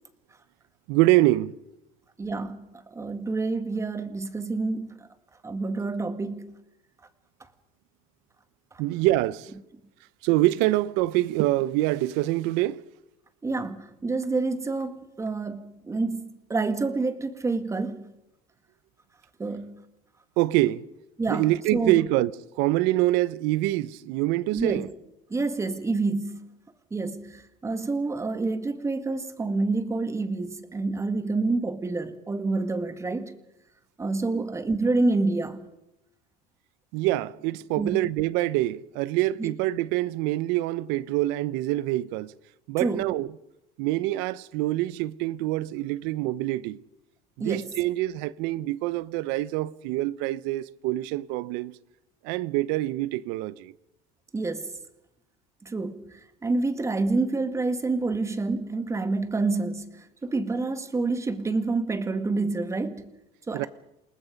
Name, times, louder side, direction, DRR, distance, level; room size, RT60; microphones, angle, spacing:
voice 1, 0.9-1.5 8.8-9.5 10.2-12.8 20.4-20.8 21.3-24.9 34.3-34.4 36.9-42.3 42.7-43.3 43.8-46.8 47.4-51.7 52.2-53.7 63.5-63.7, right 17 dB, 75° right, 0.8 m, -25 dB
voice 2, 2.2-5.1 5.4-6.6 13.4-18.1 19.4-19.8 21.2-21.5 21.7-22.0 24.5-24.9 25.3-26.5 26.9-33.4 34.0-35.6 37.8-38.1 39.4-39.5 42.8-43.0 47.4-47.7 54.3-54.7 55.6-63.0 63.5-63.7, right 3 dB, 15° right, 2.0 m, -28 dB
28.5 x 19.5 x 5.3 m
cardioid pair, 125°, 18 cm